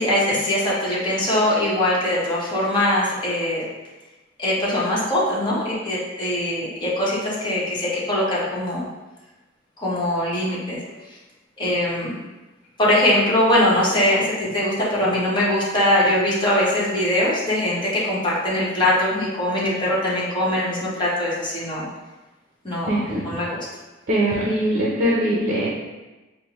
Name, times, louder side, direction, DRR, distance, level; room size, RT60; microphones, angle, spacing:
voice 1, 0.0-3.6 4.4-8.8 9.8-10.8 11.6-12.2 12.8-21.9 22.6-23.6, left 1 dB, 25° left, -7 dB, 1.0 m, -22 dB
voice 2, 22.9-23.2 24.1-25.7, right 1 dB, 45° right, -5 dB, 0.6 m, -21 dB
5.2 x 2.1 x 3.0 m, 1.1 s
head